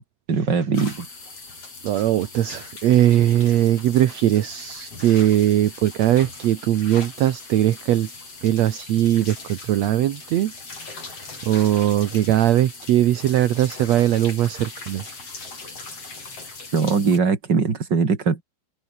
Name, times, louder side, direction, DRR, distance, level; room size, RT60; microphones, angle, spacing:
voice 1, 0.3-1.0 16.7-18.4, right 5 dB, 30° right, 3.3 m, -21 dB
sound 1, 0.7-17.2, left 3 dB, 40° left, 7.6 m, -40 dB
voice 2, 1.8-8.1 8.4-10.5 11.0-11.1 11.4-15.0, right 12 dB, 65° right, 1.9 m, -20 dB
omnidirectional pair, 4.2 m